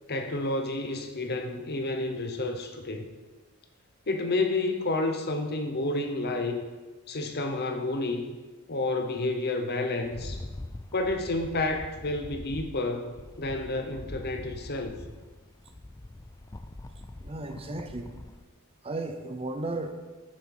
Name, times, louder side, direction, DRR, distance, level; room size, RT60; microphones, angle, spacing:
voice 1, 0.1-3.1 4.1-6.6 7.1-8.3 8.7-10.4 10.9-15.0, left 2 dB, 45° left, 6 dB, 0.9 m, -30 dB
Rattle, 10.0-18.4, left 2 dB, 15° left, 0.4 m, -43 dB
voice 2, 17.2-18.1 18.8-19.9, right 2 dB, 25° right, 7 dB, 0.7 m, -34 dB
9.4 x 7.3 x 4.8 m, 1.3 s
head